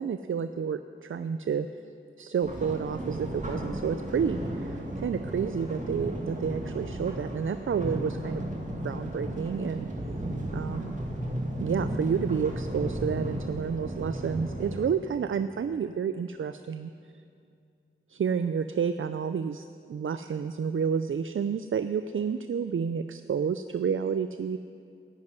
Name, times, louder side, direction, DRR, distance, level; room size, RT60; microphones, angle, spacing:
voice 1, 0.0-1.7 2.2-8.4 8.7-9.9 10.5-10.9 11.6-16.9 18.1-24.6, right 6 dB, 70° right, 10 dB, 0.4 m, -30 dB
sound 1, 2.4-14.8, right 1 dB, 35° right, 2.1 m, -34 dB
11.0 x 9.1 x 9.4 m, 2.4 s
wide cardioid pair, 65°, 21 cm